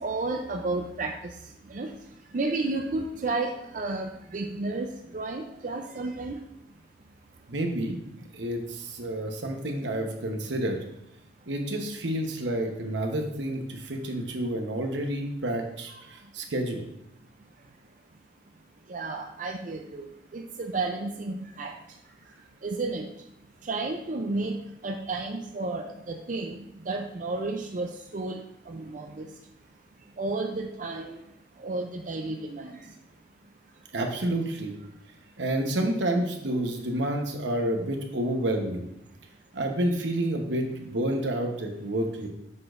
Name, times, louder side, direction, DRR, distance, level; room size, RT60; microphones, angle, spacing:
voice 1, 0.0-1.1 1.7-1.9 2.3-4.1 4.3-4.9 5.1-6.4 18.9-20.1 20.3-21.7 22.6-23.1 23.7-24.5 24.8-26.6 26.9-28.4 28.7-29.3 30.2-31.2 31.6-32.7, right 3 dB, 45° right, 3 dB, 0.5 m, -31 dB
voice 2, 7.5-8.0 8.3-10.8 11.5-16.8 33.9-34.7 35.4-38.9 39.5-42.3, right 1 dB, 85° right, 3 dB, 1.0 m, -29 dB
7.4 x 6.1 x 2.5 m, 0.80 s
head